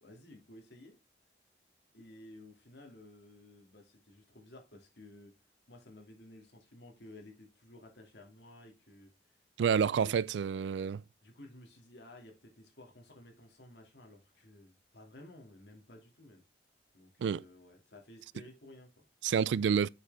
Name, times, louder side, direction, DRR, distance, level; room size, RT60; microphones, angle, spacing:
voice 1, 0.0-1.0 1.9-5.3 5.7-9.1 9.6-10.1 11.2-16.4 16.9-19.0, left 1 dB, 75° left, 2.4 m, -54 dB
voice 2, 9.6-11.0 17.2-17.4 19.2-19.9, right 7 dB, 85° right, 0.3 m, -29 dB
7.9 x 6.4 x 3.4 m
head